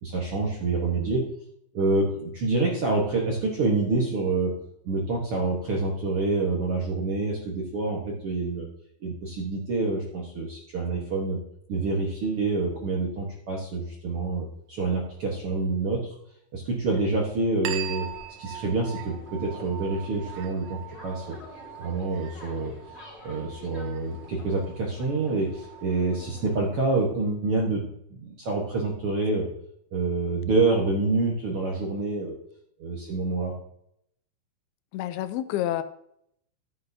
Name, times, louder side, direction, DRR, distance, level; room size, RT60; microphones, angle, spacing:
voice 1, 0.0-1.3 1.7-4.6 4.8-8.7 9.0-11.4 11.7-16.1 16.5-18.1 18.4-21.4 21.8-22.7 23.2-29.5 29.9-32.4 32.8-33.5, right 3 dB, 60° right, -2 dB, 1.5 m, -27 dB
sound 1, 17.7-26.7, left 1 dB, 50° left, 0.7 m, -48 dB
sound 2, 17.7-26.7, right 12 dB, 80° right, 2.7 m, -42 dB
voice 2, 34.9-35.8, left 12 dB, 85° left, 11 dB, 2.5 m, -28 dB
12.5 x 9.0 x 2.7 m, 0.73 s
omnidirectional pair, 4.4 m